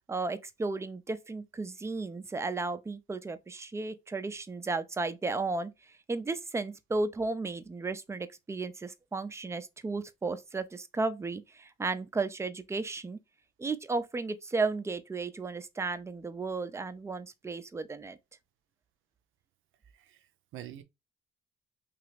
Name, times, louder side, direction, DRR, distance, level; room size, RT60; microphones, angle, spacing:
voice 1, 0.1-13.2 13.6-18.2, right 3 dB, 15° right, 0.4 m, -34 dB
voice 2, 19.9-20.8, right 12 dB, 85° right, 0.5 m, -46 dB
2.9 x 2.4 x 3.3 m
cardioid pair, 90°, 20 cm